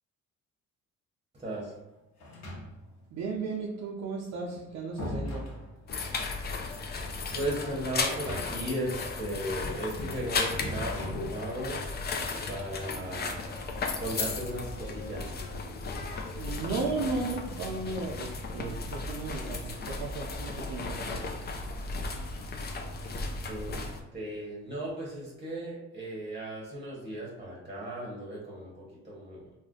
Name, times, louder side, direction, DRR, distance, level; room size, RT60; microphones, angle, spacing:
voice 1, 1.3-1.7 7.3-11.8 12.5-13.3 14.0-15.3 23.5-29.4, right 1 dB, 20° right, -4 dB, 0.9 m, -36 dB
sound 1, 2.2-3.0 4.3-6.1 8.0-8.8 9.1-9.2 10.6-11.7, left 1 dB, 60° left, 0.9 m, -39 dB
voice 2, 3.1-5.4 16.4-21.2, right 3 dB, 60° right, -2 dB, 0.5 m, -35 dB
sound 2, 5.9-24.0, left 3 dB, 30° left, 0.4 m, -35 dB
2.4 x 2.1 x 3.6 m, 0.95 s
cardioid pair, 110°, 31 cm